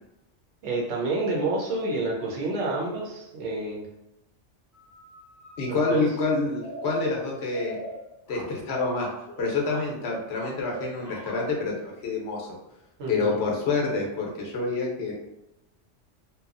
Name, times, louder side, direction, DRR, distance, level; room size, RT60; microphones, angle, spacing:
voice 1, 0.6-3.8 5.7-6.0 13.0-13.4, right 2 dB, 70° right, -3 dB, 1.0 m, -29 dB
sound 1, 4.7-6.0 6.5-11.6, equal, 20° left, 0.6 m, -42 dB
voice 2, 5.6-7.8 8.3-9.1 9.4-12.5 13.1-15.1, left 3 dB, 65° left, -1 dB, 0.9 m, -27 dB
2.8 x 2.3 x 2.4 m, 0.89 s
omnidirectional pair, 1.2 m